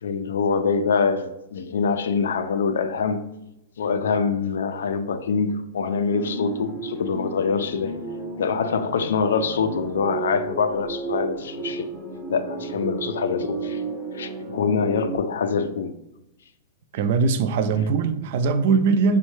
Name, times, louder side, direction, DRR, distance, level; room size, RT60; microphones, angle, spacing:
voice 1, 0.0-3.2 3.8-7.9 8.4-11.9 12.3-13.8 14.1-16.0, left 5 dB, 90° left, 0.3 m, -24 dB
sound 1, 6.1-15.2, right 4 dB, 10° right, 0.5 m, -33 dB
voice 2, 16.9-19.2, right 5 dB, 55° right, 0.3 m, -21 dB
5.2 x 2.2 x 3.1 m
hypercardioid pair, 150°, 0 cm